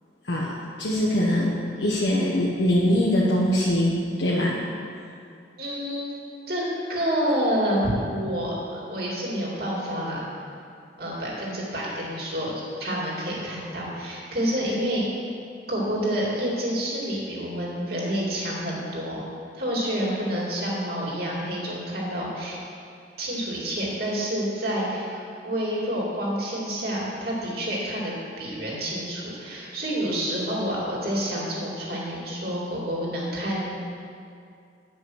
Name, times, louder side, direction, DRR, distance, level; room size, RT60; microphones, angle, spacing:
voice 1, 0.8-4.6, equal, 70° left, -5 dB, 1.0 m, -22 dB
voice 2, 5.6-6.1 6.5-10.2 11.0-12.5 12.8-15.0 15.7-19.3 19.5-22.6 23.2-33.8, equal, 60° right, -5 dB, 2.5 m, -28 dB
9.4 x 5.6 x 6.3 m, 2.4 s
head